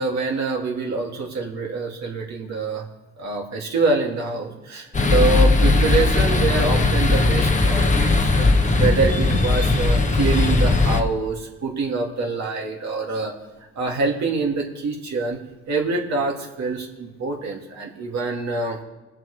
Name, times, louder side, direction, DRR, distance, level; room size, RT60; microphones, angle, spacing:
voice 1, 0.0-2.8 3.2-8.5 8.8-13.3 13.8-15.4 15.7-18.8, right 3 dB, 65° right, 0 dB, 2.4 m, -25 dB
sound 1, 4.9-11.0, left 2 dB, 25° left, 1.1 m, -18 dB
21.5 x 7.4 x 3.3 m, 1.1 s
cardioid pair, 90°, 30 cm